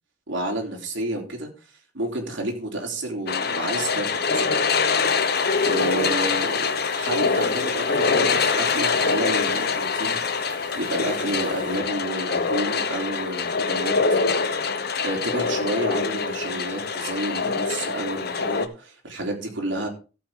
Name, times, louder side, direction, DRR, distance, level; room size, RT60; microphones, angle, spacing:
voice 1, 0.3-1.5 1.9-4.4 5.6-13.9 15.0-19.9, right 1 dB, 65° right, 1 dB, 3.5 m, -30 dB
sound 1, 3.3-18.6, left 5 dB, 50° left, 1.0 m, -24 dB
sound 2, 5.1-11.8, right 3 dB, 40° right, 3.8 m, -45 dB
14.5 x 8.0 x 3.8 m, 0.33 s
head